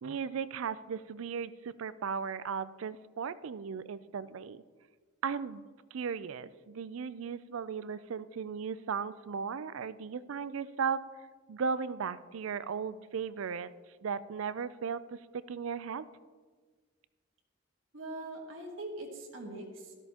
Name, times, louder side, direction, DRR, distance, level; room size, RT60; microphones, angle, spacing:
voice 1, 0.0-4.6 5.2-5.6 5.9-11.0 11.5-13.7 14.0-16.1, right 6 dB, 90° right, 16 dB, 0.4 m, -36 dB
voice 2, 17.9-19.9, right 2 dB, 70° right, 0 dB, 1.6 m, -42 dB
12.5 x 12.5 x 2.9 m, 1.5 s
head